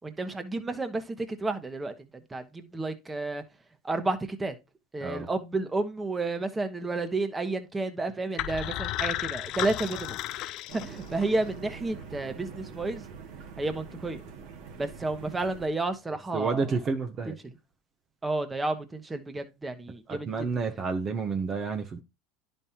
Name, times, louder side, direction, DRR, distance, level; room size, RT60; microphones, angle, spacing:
voice 1, 0.0-3.4 3.8-4.5 4.9-10.2 10.8-13.0 13.6-14.2 14.8-16.8 17.3-17.6 18.2-20.3, right 2 dB, 15° right, 1.4 m, -31 dB
sound 1, 8.4-11.4, left 15 dB, 55° left, 0.4 m, -33 dB
sound 2, 10.7-15.7, right 6 dB, 65° right, 2.2 m, -44 dB
voice 2, 16.3-17.3 20.1-22.0, right 4 dB, 35° right, 1.1 m, -30 dB
10.5 x 5.5 x 2.9 m
hypercardioid pair, 95°, 0 cm